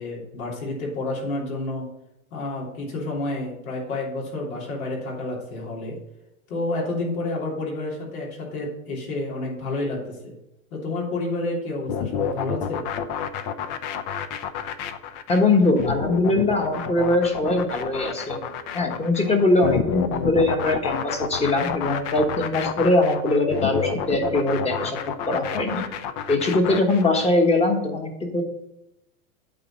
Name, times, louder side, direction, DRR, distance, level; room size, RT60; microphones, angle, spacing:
voice 1, 0.0-1.8 2.3-6.0 6.5-10.3 10.7-12.8, left 2 dB, 80° left, -3 dB, 3.2 m, -30 dB
sound 1, 11.9-27.3, left 8 dB, 40° left, 0.6 m, -30 dB
voice 2, 15.3-18.4 18.7-25.0 25.3-25.9 26.3-28.4, left 2 dB, 15° left, 3 dB, 1.2 m, -21 dB
8.7 x 4.1 x 6.5 m, 0.87 s
supercardioid pair, 135°, 42 cm